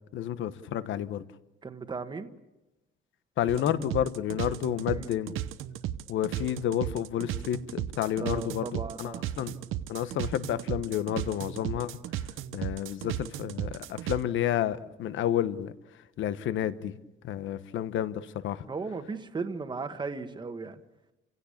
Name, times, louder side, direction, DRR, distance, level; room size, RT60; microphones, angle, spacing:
voice 1, 0.1-1.2 3.4-5.4 6.1-9.5 9.9-11.9 12.5-15.7 16.2-17.0 17.2-18.6, left 11 dB, 70° left, 13 dB, 1.1 m, -30 dB
voice 2, 1.6-2.3 4.9-5.1 8.2-9.2 18.7-20.8, right 4 dB, 20° right, 7 dB, 1.4 m, -36 dB
sound 1, 3.5-14.2, right 12 dB, 85° right, 0.9 m, -35 dB
29.5 x 16.5 x 8.5 m, 0.99 s
cardioid pair, 145°, 20 cm